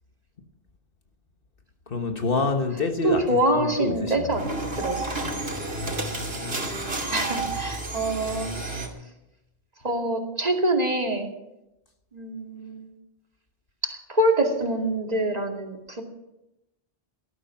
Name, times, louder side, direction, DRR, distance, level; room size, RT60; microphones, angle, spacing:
voice 1, 1.9-4.5, left 3 dB, 60° left, 1.4 m, -27 dB
voice 2, 3.0-4.4 4.8-5.3 7.1-8.5 9.8-11.3 12.1-12.9 13.8-16.0, right 1 dB, 40° right, 2.4 m, -25 dB
sound 1, 4.3-8.9, right 2 dB, 75° right, 3.0 m, -30 dB
18.5 x 13.0 x 5.9 m
omnidirectional pair, 1.1 m